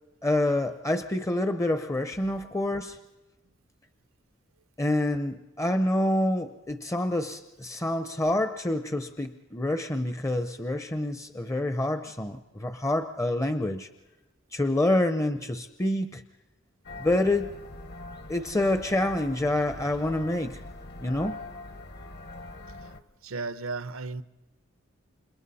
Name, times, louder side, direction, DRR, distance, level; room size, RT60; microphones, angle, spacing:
voice 1, 0.2-3.0 4.8-13.9 14.5-16.2 17.0-17.5 18.3-20.6 21.0-21.4, left 1 dB, 15° left, 0.6 m, -27 dB
voice 2, 2.2-2.7 23.2-24.2, right 3 dB, 90° right, 0.9 m, -36 dB
sound 1, 16.8-23.0, left 2 dB, 55° left, 1.3 m, -43 dB
29.5 x 26.5 x 4.2 m
head